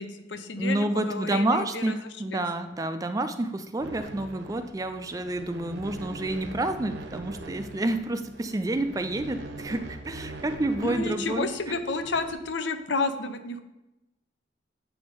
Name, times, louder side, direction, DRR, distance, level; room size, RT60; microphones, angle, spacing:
voice 1, 0.0-2.0 2.3-2.4 10.8-13.6, left 3 dB, 80° left, 9 dB, 0.7 m, -31 dB
voice 2, 0.6-11.5, right 2 dB, 20° right, 9 dB, 0.4 m, -29 dB
sound 1, 3.8-12.3, right 2 dB, 70° right, 0.7 m, -42 dB
7.7 x 3.5 x 5.2 m, 0.97 s
head